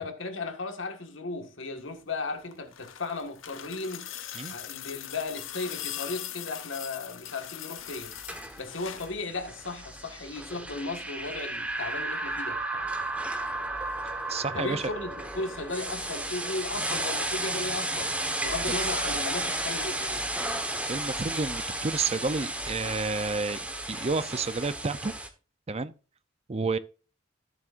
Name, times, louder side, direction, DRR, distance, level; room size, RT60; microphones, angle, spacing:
voice 1, 0.0-4.1 4.5-8.1 8.6-12.6 14.6-20.3, left 3 dB, 70° left, 1.7 m, -36 dB
sound 1, 2.4-9.2 10.5-10.6, left 11 dB, 85° left, 0.9 m, -40 dB
sound 2, 7.9-25.3, right 1 dB, 5° right, 1.3 m, -33 dB
voice 2, 14.3-14.8 20.9-23.6 23.9-25.1 25.7-25.9 26.5-26.8, right 4 dB, 35° right, 0.6 m, -30 dB
14.0 x 7.2 x 2.6 m
head